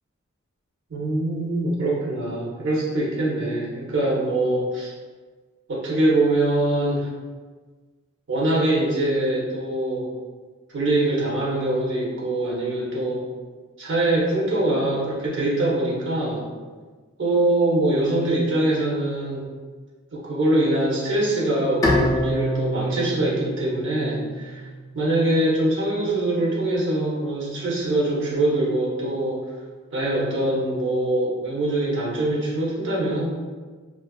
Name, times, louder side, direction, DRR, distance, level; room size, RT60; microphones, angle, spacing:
voice 1, 0.9-4.9 5.7-7.1 8.3-10.1 10.7-13.2 13.8-16.4 17.2-19.4 20.1-24.6 24.9-29.4 29.9-33.2, right 1 dB, 60° right, -5 dB, 0.6 m, -23 dB
Bowed string instrument, 21.8-25.1, equal, 15° left, 0.3 m, -26 dB
2.9 x 2.3 x 2.2 m, 1.4 s
head